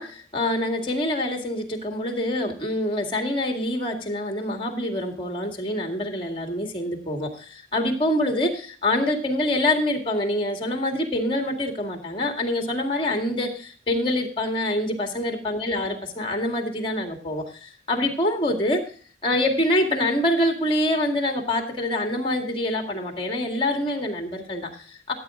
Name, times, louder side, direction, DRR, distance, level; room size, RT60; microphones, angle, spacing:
voice 1, 0.0-18.8 19.2-25.1, left 1 dB, 30° left, 3 dB, 2.1 m, -25 dB
13.5 x 8.6 x 3.7 m, 0.43 s
head